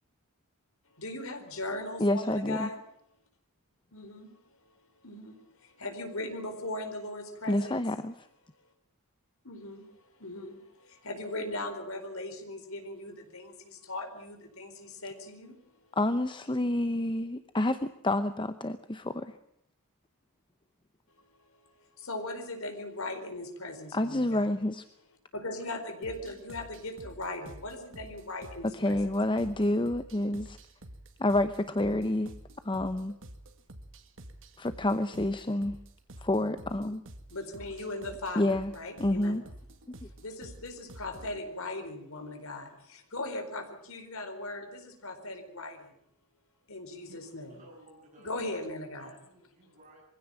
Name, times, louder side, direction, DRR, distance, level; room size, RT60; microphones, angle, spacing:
voice 1, 1.0-2.8 3.9-4.3 5.0-5.3 5.8-7.8 9.5-9.8 10.2-10.6 11.0-13.5 13.9-14.7 15.0-15.5 22.1-24.5 25.3-29.0 37.3-39.3 40.2-42.7 43.1-45.8 46.7-47.6 48.2-49.1, left 2 dB, 70° left, 5 dB, 4.5 m, -38 dB
voice 2, 2.0-2.7 7.5-8.3 16.0-19.4 23.9-24.8 28.6-30.6 31.2-32.3 32.6-33.2 34.6-35.8 36.2-37.0 38.4-38.7 39.0-39.4, left 1 dB, 20° left, 11 dB, 0.8 m, -28 dB
sound 1, 26.0-41.4, right 1 dB, 60° right, 2.1 m, -49 dB
voice 3, 40.5-40.9 46.9-48.6 49.0-50.0, right 1 dB, 35° right, -3 dB, 7.6 m, -57 dB
23.0 x 16.0 x 8.9 m, 0.74 s
head